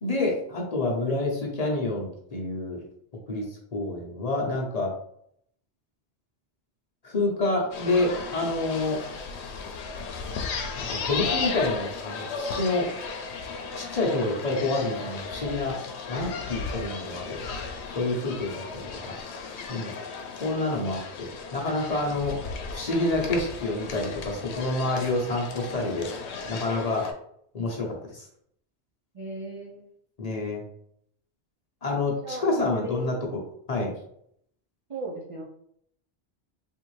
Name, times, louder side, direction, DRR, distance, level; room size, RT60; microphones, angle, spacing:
voice 1, 0.0-2.8 3.3-4.9 7.0-9.0 10.8-12.9 13.7-15.8 16.1-17.4 17.9-19.2 19.7-19.9 20.4-22.4 22.7-26.1 26.5-27.1 27.5-28.3 30.2-30.6 31.8-33.4 33.7-33.9, left 2 dB, 40° left, -2 dB, 0.8 m, -28 dB
sound 1, 7.7-27.1, left 5 dB, 85° left, 0.9 m, -35 dB
voice 2, 29.1-29.9 32.2-33.2 34.9-35.4, right 1 dB, 50° right, -1 dB, 0.4 m, -36 dB
3.5 x 2.6 x 3.1 m, 0.69 s
omnidirectional pair, 1.1 m